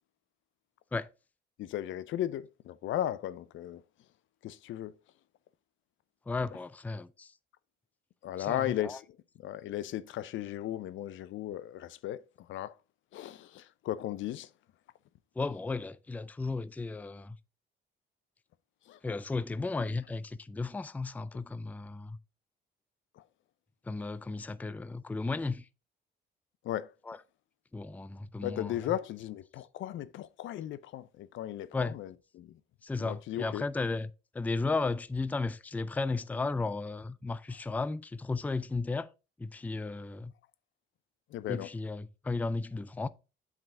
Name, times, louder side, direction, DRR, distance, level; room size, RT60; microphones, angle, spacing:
voice 1, 1.6-3.8 4.4-4.9 8.2-9.0 9.4-12.7 13.1-14.5 18.9-19.0 23.2-23.3 26.6-26.9 28.4-32.6 33.0-33.6 41.3-41.7, left 12 dB, 75° left, 0.5 m, -36 dB
voice 2, 6.3-7.3 8.4-9.0 15.4-17.4 19.0-22.2 23.8-25.7 27.1-27.2 27.7-29.0 31.7-32.0 32.8-39.1 39.4-40.3 41.5-43.1, left 3 dB, 10° left, 0.3 m, -34 dB
7.6 x 5.0 x 3.7 m
cardioid pair, 90°, 20 cm